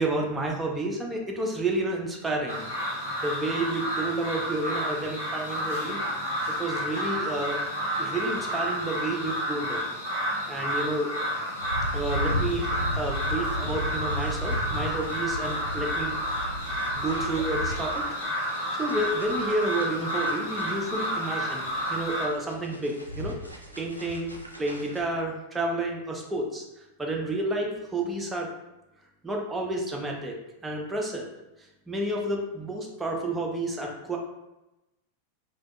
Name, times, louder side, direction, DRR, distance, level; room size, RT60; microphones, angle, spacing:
voice 1, 0.0-2.7 3.2-6.0 6.5-7.6 8.0-9.8 10.5-11.1 11.9-16.2 16.6-17.9 18.3-23.3 23.8-28.5 29.2-30.4 30.6-31.2 31.9-34.2, right 2 dB, 10° right, 0 dB, 0.4 m, -30 dB
sound 1, 2.5-22.3, equal, 75° left, 1.0 m, -30 dB
sound 2, 11.6-25.0, left 1 dB, 85° right, 0.3 m, -35 dB
2.5 x 2.2 x 2.3 m, 0.97 s
figure-of-eight pair, 90°, 0 cm